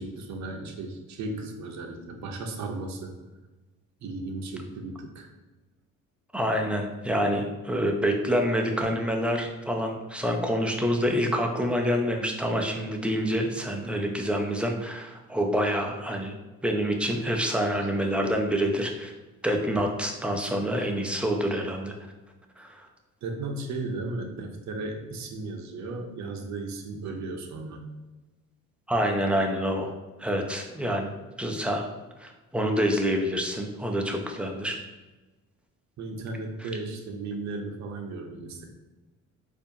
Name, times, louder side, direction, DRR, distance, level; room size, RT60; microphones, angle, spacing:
voice 1, 0.0-3.1 4.0-5.3 20.8-20.9 21.5-21.6 23.2-27.8 36.0-38.6, right 3 dB, 60° right, 3 dB, 0.7 m, -35 dB
voice 2, 6.3-16.3 16.6-19.1 19.4-21.9 22.6-22.9 28.9-29.9 30.2-31.9 32.2-34.8 36.6-36.7, equal, 5° right, 2 dB, 0.5 m, -27 dB
4.3 x 2.6 x 2.7 m, 1.1 s
cardioid pair, 95°, 32 cm